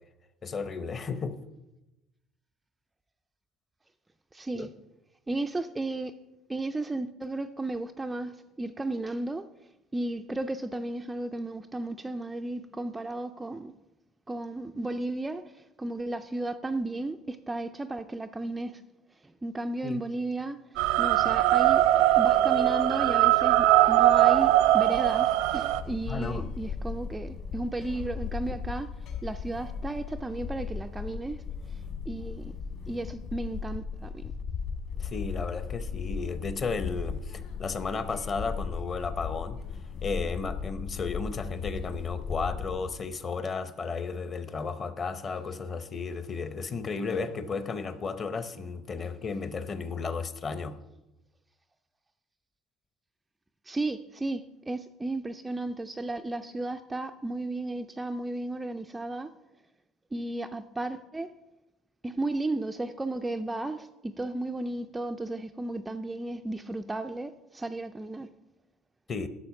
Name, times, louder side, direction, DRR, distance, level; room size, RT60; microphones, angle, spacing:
voice 1, 0.4-1.4 4.5-4.7 19.8-20.0 26.1-26.5 35.0-39.6 40.0-50.8 69.1-69.3, left 4 dB, 25° left, 0.7 m, -34 dB
voice 2, 4.3-4.7 5.3-6.1 6.5-9.5 9.9-13.7 14.3-18.8 19.2-20.6 21.0-21.9 22.2-28.9 29.2-31.8 32.1-32.5 32.9-34.3 53.7-59.4 60.1-61.3 62.0-68.3, right 2 dB, 10° right, 0.3 m, -34 dB
sound 1, 20.8-25.8, right 14 dB, 85° right, 0.7 m, -21 dB
sound 2, 25.7-43.0, left 5 dB, 50° left, 2.0 m, -37 dB
12.0 x 6.9 x 5.9 m
cardioid pair, 165°, 0 cm